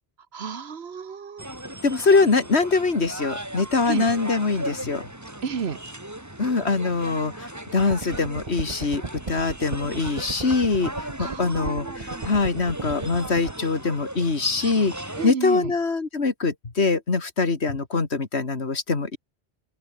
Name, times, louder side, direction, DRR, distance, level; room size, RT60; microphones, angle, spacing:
voice 1, 0.3-1.4 3.9-4.0 5.4-5.8 11.2-12.3 15.1-15.7, right 6 dB, 75° right, 1.5 m, -32 dB
sound 1, 1.4-15.3, right 1 dB, 15° right, 2.7 m, -37 dB
voice 2, 1.8-5.0 6.4-9.0 9.3-19.2, left 4 dB, 85° left, 2.6 m, -23 dB
sound 2, 7.8-13.5, right 3 dB, 30° right, 1.2 m, -36 dB
open air
omnidirectional pair, 1.1 m